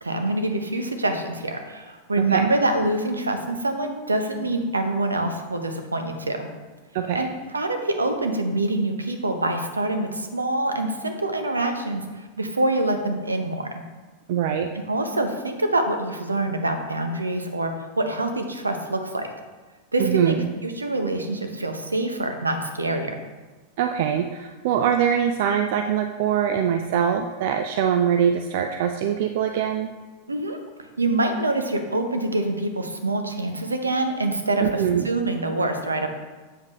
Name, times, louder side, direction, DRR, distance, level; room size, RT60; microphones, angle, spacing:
voice 1, 0.0-6.5 7.1-13.8 14.9-19.3 19.9-20.4 20.6-23.2 30.3-30.6 31.0-36.1, right 2 dB, 80° right, 6 dB, 0.8 m, -25 dB
voice 2, 2.2-2.5 6.9-7.2 14.3-14.7 20.0-20.5 23.8-29.9 34.6-35.1, right 8 dB, 50° right, 6 dB, 0.4 m, -23 dB
8.0 x 7.2 x 3.1 m, 1.3 s
figure-of-eight pair, 90°, 0 cm